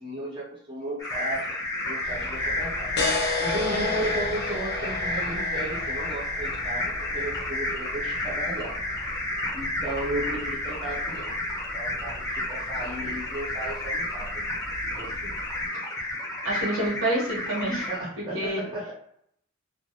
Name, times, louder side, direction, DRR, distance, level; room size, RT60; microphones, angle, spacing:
voice 1, 0.0-1.5 1.8-9.2 9.5-11.3 11.7-15.4 17.9-18.9, right 1 dB, 25° right, -6 dB, 0.6 m, -35 dB
sound 1, 1.0-18.0, left 1 dB, 15° left, 0.7 m, -31 dB
sound 2, 2.0-15.6, left 3 dB, 50° left, 0.5 m, -35 dB
voice 2, 16.4-17.9 18.3-18.7, right 1 dB, 70° right, -4 dB, 1.0 m, -27 dB
2.3 x 2.1 x 2.7 m, 0.70 s
head